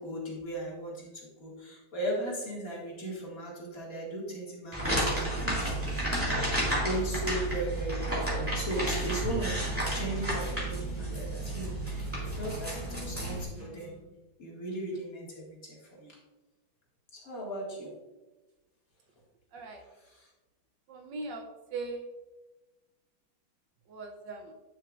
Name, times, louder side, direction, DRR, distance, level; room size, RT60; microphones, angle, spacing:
voice 1, 0.0-6.0 6.8-13.9 14.4-16.2 17.1-17.9 20.0-20.3, right 1 dB, 45° left, -4 dB, 2.4 m, -37 dB
sound 1, 4.7-13.4, right 1 dB, 5° right, 2.3 m, -31 dB
sound 2, 8.8-14.0, right 2 dB, 85° right, 3.8 m, -49 dB
voice 2, 19.5-19.8 20.9-22.1 23.9-24.5, right 3 dB, 65° right, 4 dB, 1.3 m, -40 dB
9.9 x 6.8 x 2.5 m, 1.1 s
omnidirectional pair, 2.2 m